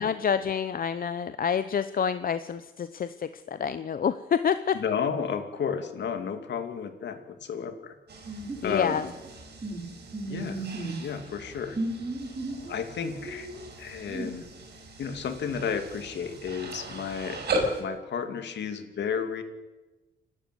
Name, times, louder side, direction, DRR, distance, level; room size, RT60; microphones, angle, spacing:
voice 1, 0.0-4.8 8.6-9.1, left 7 dB, 45° left, 12 dB, 0.9 m, -28 dB
voice 2, 4.7-7.9 8.6-9.1 10.2-10.7 11.0-11.8 12.7-13.5 13.8-14.5 15.0-17.4 17.8-19.4, left 7 dB, 60° left, 7 dB, 2.6 m, -32 dB
sound 1, 8.1-17.8, right 1 dB, 55° right, 6.9 m, -38 dB
sound 2, 8.3-9.0 9.2-9.3 9.6-9.8 10.1-11.0 11.7-12.7 13.3-13.7 14.1-14.3, right 2 dB, 25° right, 6.3 m, -34 dB
28.5 x 12.5 x 8.2 m, 1.2 s
cardioid pair, 90°, 20 cm